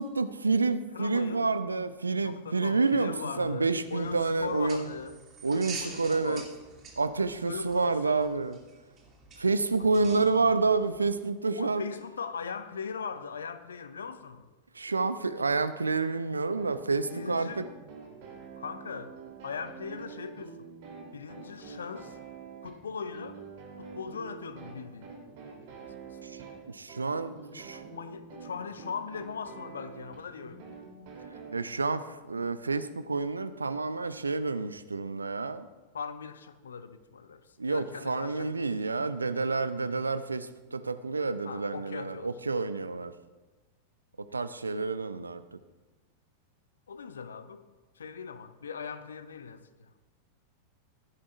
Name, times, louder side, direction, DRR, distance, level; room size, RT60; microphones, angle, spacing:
voice 1, 0.0-4.9 5.4-6.4 7.0-8.6 9.4-11.9 14.7-17.7 26.2-26.4 26.7-27.8 31.5-35.7 37.6-43.1 44.2-45.4, right 3 dB, 80° right, 14 dB, 0.5 m, -29 dB
voice 2, 0.9-1.5 2.2-5.1 5.8-6.5 7.4-8.3 10.0-10.5 11.5-14.5 17.1-17.6 18.6-19.1 19.4-20.6 21.1-22.2 22.6-23.4 23.8-25.1 26.1-26.2 27.2-27.3 27.7-30.7 35.9-38.7 41.4-42.4 46.9-47.6 48.0-50.1, left 6 dB, 70° left, 11 dB, 0.7 m, -40 dB
sound 1, 3.9-11.3, right 4 dB, 30° right, 2.5 m, -47 dB
sound 2, 16.6-31.5, right 5 dB, 45° right, 3.1 m, -46 dB
15.0 x 11.0 x 2.5 m, 1.2 s
figure-of-eight pair, 90°, 0 cm